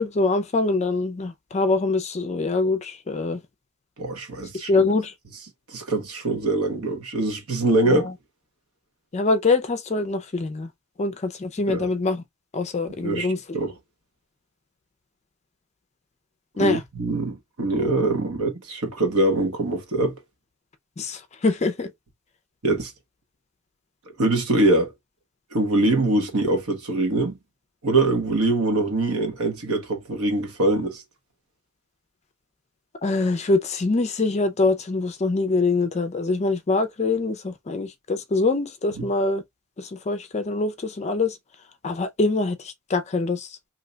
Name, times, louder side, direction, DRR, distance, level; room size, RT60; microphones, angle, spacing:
voice 1, 0.0-3.4 4.7-5.1 7.8-8.1 9.1-10.7 11.0-12.2 12.5-13.4 16.6-16.8 21.0-21.9 33.0-39.4 39.8-41.4 41.8-43.7, left 3 dB, 30° left, 0.4 m, -24 dB
voice 2, 4.0-4.8 5.7-8.0 11.7-11.9 13.0-13.7 16.6-20.2 22.6-22.9 24.2-24.9 25.5-27.4 27.8-31.0 39.0-39.1, right 2 dB, 80° right, 1.1 m, -23 dB
2.8 x 2.2 x 3.7 m
head